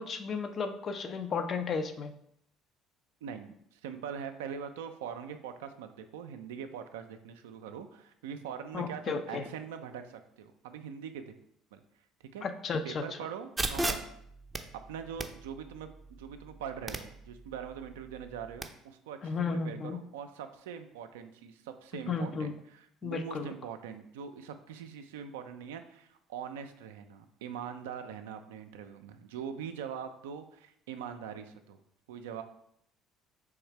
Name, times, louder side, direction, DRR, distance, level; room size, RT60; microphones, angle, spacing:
voice 1, 0.0-2.1 8.7-9.4 12.4-13.0 19.2-20.0 22.1-22.5 23.0-23.5, left 5 dB, 45° left, 8 dB, 0.5 m, -33 dB
voice 2, 3.2-11.3 11.7-11.8 12.3-12.4 12.8-14.0 14.9-15.9 16.2-31.8 32.1-32.4, right 7 dB, 75° right, 7 dB, 0.4 m, -42 dB
sound 1, 13.6-18.6, right 2 dB, 20° right, 0.5 m, -38 dB
3.5 x 3.1 x 4.5 m, 0.72 s
hypercardioid pair, 60°, 0 cm